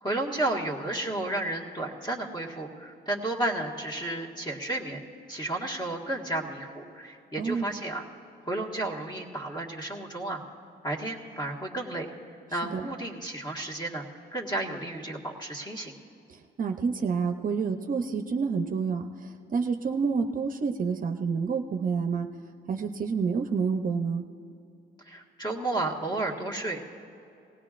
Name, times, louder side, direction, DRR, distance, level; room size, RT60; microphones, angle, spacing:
voice 1, 0.0-5.0 5.3-8.0 8.4-10.4 10.8-12.1 12.5-14.0 14.3-15.9 25.0-26.9, right 2 dB, 20° left, 0 dB, 1.7 m, -32 dB
voice 2, 7.4-7.7 12.6-12.9 16.3-22.3 22.7-24.2, right 5 dB, 45° right, 6 dB, 0.6 m, -28 dB
19.0 x 17.0 x 2.5 m, 2.6 s
cardioid pair, 90°, 20 cm